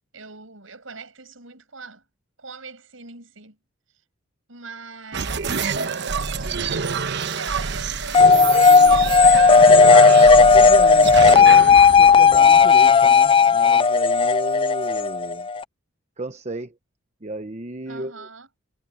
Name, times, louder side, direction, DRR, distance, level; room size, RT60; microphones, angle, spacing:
voice 1, 0.1-2.0 2.4-3.6 4.5-5.7 6.1-9.1 17.9-18.5, right 4 dB, 75° right, 6.1 m, -41 dB
sound 1, 5.1-13.3, right 5 dB, 60° right, 1.1 m, -27 dB
sound 2, 8.1-15.6, left 5 dB, 25° left, 0.4 m, -13 dB
voice 2, 10.4-15.5 16.2-16.7 17.2-18.3, right 2 dB, 35° right, 1.0 m, -33 dB
head